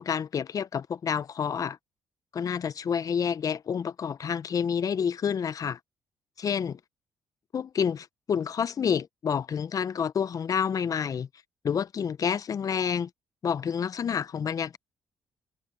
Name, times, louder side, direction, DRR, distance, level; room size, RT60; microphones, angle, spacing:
voice 1, 0.0-1.8 2.3-5.8 6.4-6.8 7.5-11.3 11.6-13.1 13.4-14.8, left 7 dB, 50° left, 1.2 m, -29 dB
hypercardioid pair, 45°, 7 cm